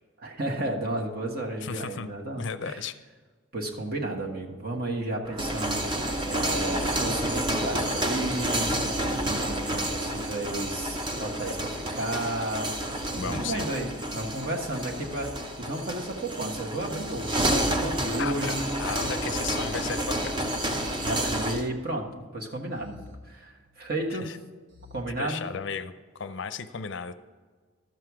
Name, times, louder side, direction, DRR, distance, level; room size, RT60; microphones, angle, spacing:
voice 1, 0.2-2.8 3.5-8.7 9.2-11.6 11.9-12.7 13.1-17.5 17.8-18.7 21.0-23.0 23.3-24.3 24.9-25.5, right 1 dB, 45° right, 1 dB, 1.4 m, -33 dB
voice 2, 1.6-2.1 2.4-2.9 13.2-13.7 18.2-20.4 24.1-24.4 25.2-27.2, left 6 dB, 55° left, 12 dB, 0.5 m, -35 dB
sound 1, 5.2-21.7, right 1 dB, 20° right, 0.7 m, -30 dB
sound 2, 14.9-16.1 16.8-18.1 18.8-20.1 20.8-22.1 22.7-24.0 24.7-25.0, left 3 dB, 60° right, 1.3 m, -50 dB
12.0 x 7.8 x 4.8 m, 1.5 s
head